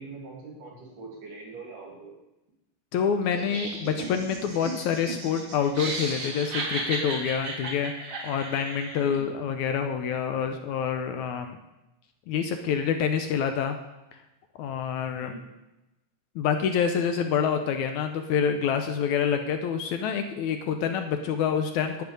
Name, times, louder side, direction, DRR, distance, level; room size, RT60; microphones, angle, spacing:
voice 1, 0.0-2.1 9.0-9.3 15.1-15.5, right 3 dB, 75° right, -1 dB, 4.4 m, -43 dB
voice 2, 2.9-7.9 8.2-11.6 12.3-13.8 14.6-15.3 16.4-22.0, left 7 dB, 75° left, 7 dB, 1.9 m, -27 dB
Laughter, 3.3-9.2, right 2 dB, 45° right, 2.5 m, -35 dB
10.5 x 9.1 x 5.2 m, 0.97 s
omnidirectional pair, 3.8 m